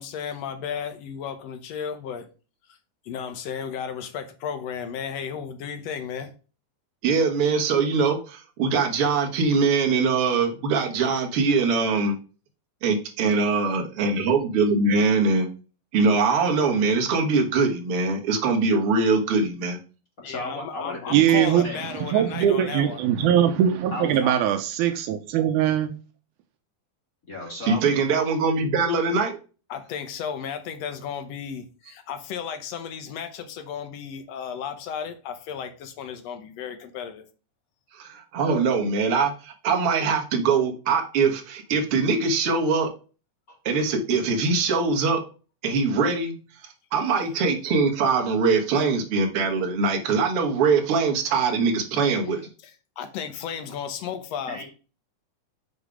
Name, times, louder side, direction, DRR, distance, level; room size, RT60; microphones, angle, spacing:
voice 1, 0.0-2.3 3.0-6.3 20.2-23.0 29.7-37.2 52.6-54.6, left 7 dB, 70° left, 1.8 m, -34 dB
voice 2, 7.0-12.2 12.8-15.5 15.9-19.8 27.6-29.4 37.9-42.9 43.7-45.2 45.6-46.3 46.6-52.4, right 4 dB, 55° right, 1.9 m, -22 dB
voice 3, 20.2-21.0 21.3-21.8 23.9-24.3 27.3-27.8 43.5-43.6 54.5-54.6, left 1 dB, 30° left, 2.1 m, -34 dB
voice 4, 21.1-21.7 22.1-26.0, right 10 dB, 85° right, 2.1 m, -21 dB
6.9 x 4.1 x 4.9 m
omnidirectional pair, 3.5 m